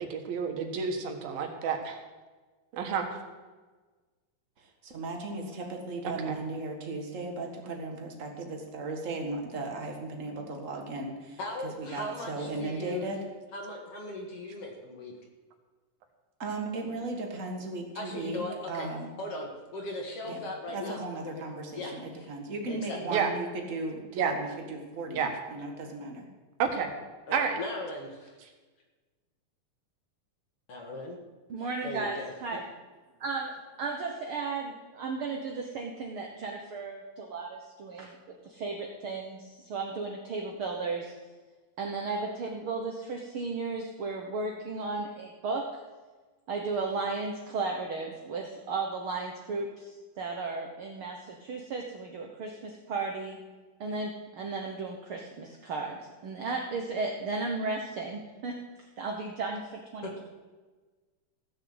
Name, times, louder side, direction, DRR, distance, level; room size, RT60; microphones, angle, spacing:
voice 1, 0.0-2.0 2.7-3.1 6.0-6.4 23.1-23.3 24.1-24.3 25.1-25.3 26.6-26.9 27.3-27.6, right 6 dB, 90° right, 4 dB, 3.3 m, -30 dB
voice 2, 4.6-13.2 16.4-19.1 20.3-26.3, right 2 dB, 35° right, 2 dB, 1.3 m, -36 dB
voice 3, 11.4-13.0 13.5-15.1 18.0-18.9 19.2-21.4 21.7-22.3 22.7-23.2 27.3-28.4 30.7-31.2 31.6-32.3 60.0-60.2, left 1 dB, 50° left, 1 dB, 2.5 m, -38 dB
voice 4, 31.5-32.6 33.2-33.5 33.8-38.2 38.4-41.1 41.8-45.8 46.5-53.4 53.8-58.6 59.0-60.2, right 3 dB, 70° right, 1 dB, 1.2 m, -35 dB
16.0 x 6.6 x 7.9 m, 1.3 s
omnidirectional pair, 4.0 m